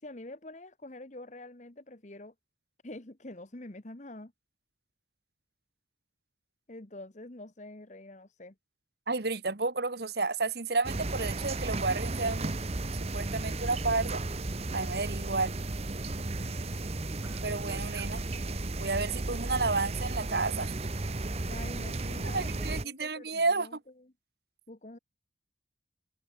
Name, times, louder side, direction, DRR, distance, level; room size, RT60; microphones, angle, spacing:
voice 1, 0.0-2.3 2.8-4.3 6.7-8.5 21.5-24.1 24.7-25.0, left 1 dB, 40° left, 1.3 m, -46 dB
voice 2, 9.1-12.5 13.1-14.2 14.7-15.5 17.4-18.3 18.8-20.7 22.3-23.8, right 3 dB, 55° right, 1.3 m, -31 dB
sound 1, 10.8-22.8, right 2 dB, 35° right, 0.9 m, -34 dB
sound 2, 13.2-18.7 19.0-20.0, equal, 15° right, 6.3 m, -50 dB
head